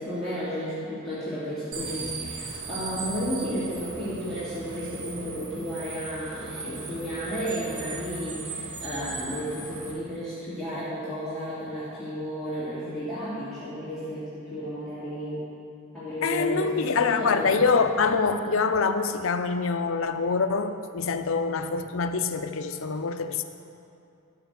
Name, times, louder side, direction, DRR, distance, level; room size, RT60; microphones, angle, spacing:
voice 1, 0.0-15.4 15.9-17.5, equal, ahead, -14 dB, 2.6 m, -33 dB
sound 1, 1.7-9.9, right 3 dB, 85° right, 1.5 m, -38 dB
voice 2, 16.2-23.4, left 4 dB, 65° left, 8 dB, 0.6 m, -25 dB
12.5 x 5.9 x 6.8 m, 2.6 s
head